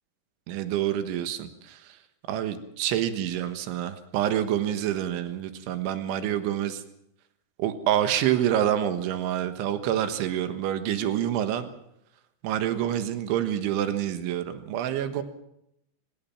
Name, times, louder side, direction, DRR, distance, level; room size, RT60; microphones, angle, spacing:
voice 1, 0.5-1.8 2.3-6.8 7.6-11.7 12.4-15.2, right 11 dB, 75° right, 10 dB, 3.7 m, -27 dB
24.0 x 19.0 x 5.9 m, 0.78 s
omnidirectional pair, 5.7 m